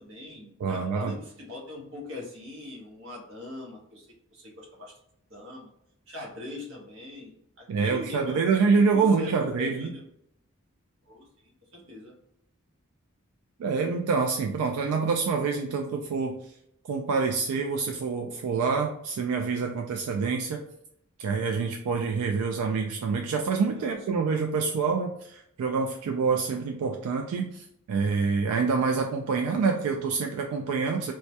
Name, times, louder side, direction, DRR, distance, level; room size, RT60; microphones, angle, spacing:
voice 1, 0.0-4.9 5.3-5.7 6.1-10.0 11.1-12.1 23.8-23.9, left 2 dB, 60° right, -2 dB, 0.8 m, -41 dB
voice 2, 0.6-1.2 7.7-9.9 13.6-16.5 16.9-20.6 21.2-31.1, right 5 dB, 90° right, 5 dB, 0.3 m, -26 dB
2.1 x 2.1 x 2.7 m, 0.75 s
head